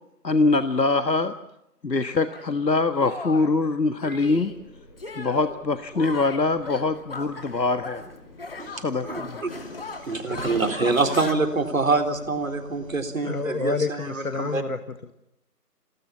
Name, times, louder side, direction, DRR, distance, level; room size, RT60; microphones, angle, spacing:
voice 1, 0.2-1.3 1.8-4.5 5.2-8.1 8.6-9.5, left 3 dB, 85° left, 9 dB, 1.6 m, -23 dB
Shatter, 2.3-2.5 3.0-3.5 4.0-4.6 5.0-5.6 5.9-8.1 8.4-11.3, left 3 dB, 35° left, 2.6 m, -37 dB
sound 1, 4.1-13.0, left 1 dB, 20° left, 7.7 m, -49 dB
voice 2, 9.1-9.5 10.0-14.0 14.4-14.6, right 3 dB, 55° right, 6 dB, 4.0 m, -25 dB
voice 3, 13.2-15.1, left 4 dB, 60° left, 11 dB, 1.5 m, -29 dB
28.5 x 19.0 x 7.2 m, 0.86 s
figure-of-eight pair, 165°, 49 cm